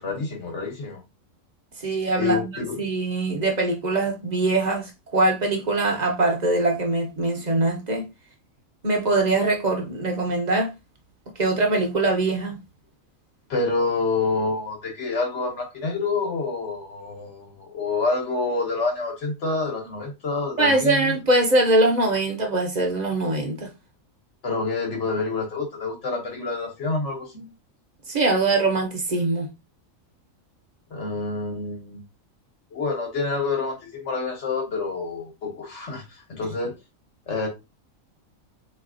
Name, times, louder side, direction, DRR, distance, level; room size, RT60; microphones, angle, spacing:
voice 1, 0.0-1.0 2.2-2.8 13.5-21.1 24.4-27.5 30.9-32.0 32.7-36.7 37.3-37.5, left 3 dB, 60° left, 1.6 m, -27 dB
voice 2, 1.8-8.1 8.8-10.7 11.4-12.6 20.6-23.7 28.1-29.5, right 2 dB, 40° right, 0.8 m, -22 dB
4.0 x 3.1 x 2.5 m
omnidirectional pair, 1.4 m